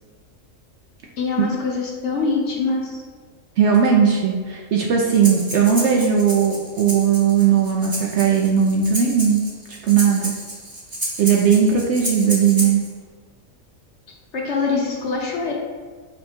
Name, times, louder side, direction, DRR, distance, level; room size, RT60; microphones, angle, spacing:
voice 1, 1.2-3.0 14.3-15.5, left 4 dB, 60° left, -1 dB, 0.9 m, -24 dB
voice 2, 3.6-9.4 9.8-10.3 11.2-12.8, right 7 dB, 65° right, -1 dB, 0.7 m, -17 dB
Breathing, 5.1-12.9, right 1 dB, 20° right, 0.6 m, -31 dB
5.6 x 2.2 x 4.4 m, 1.5 s
omnidirectional pair, 1.5 m